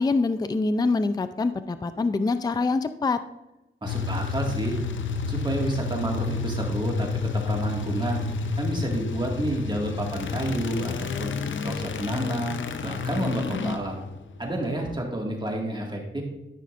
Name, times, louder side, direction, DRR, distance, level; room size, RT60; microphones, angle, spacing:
voice 1, 0.0-3.2, left 3 dB, 20° left, 11 dB, 0.4 m, -25 dB
voice 2, 3.8-4.8 5.3-8.2 8.6-11.3 11.6-14.0 14.4-16.2, right 1 dB, 20° right, -1 dB, 1.9 m, -30 dB
sound 1, 3.9-15.0, left 4 dB, 70° left, 0.6 m, -30 dB
12.5 x 5.7 x 2.5 m, 0.96 s
wide cardioid pair, 80°, 20 cm